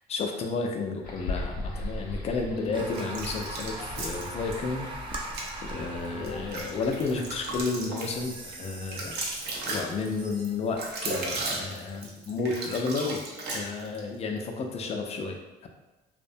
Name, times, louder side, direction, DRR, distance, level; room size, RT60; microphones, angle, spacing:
voice 1, 0.1-4.9 5.6-13.2 13.5-15.4, left 4 dB, 40° left, 3 dB, 0.4 m, -32 dB
sound 1, 1.0-7.6, left 2 dB, 65° left, 0.8 m, -39 dB
sound 2, 2.7-11.8, right 2 dB, 30° right, 0.4 m, -42 dB
sound 3, 2.9-4.6 5.2-5.5 6.0-14.1, right 2 dB, 80° right, 0.5 m, -35 dB
2.6 x 2.1 x 2.6 m, 1.1 s
cardioid pair, 110°, 17 cm